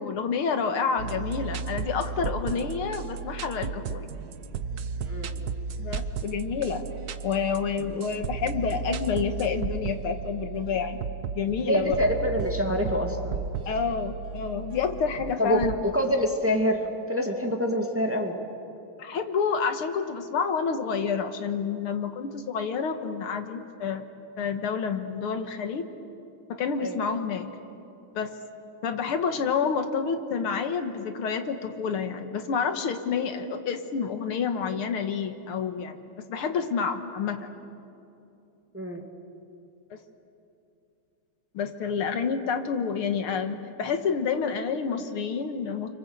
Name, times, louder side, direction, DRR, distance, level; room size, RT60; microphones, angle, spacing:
voice 1, 0.0-4.1 5.8-6.8 7.2-11.0 11.4-12.0 13.7-15.8 19.0-24.0 24.4-25.9 26.5-27.5 28.1-28.3 28.8-37.5 39.9-40.0 41.5-45.9, left 6 dB, 85° left, 7 dB, 2.3 m, -29 dB
sound 1, 1.0-15.8, right 5 dB, 60° right, 1.1 m, -34 dB
voice 2, 5.1-5.4 11.7-13.4 15.4-18.4 26.8-27.0 38.7-39.1, equal, 5° right, 2 dB, 2.0 m, -26 dB
30.0 x 25.0 x 8.0 m, 2.7 s
omnidirectional pair, 2.3 m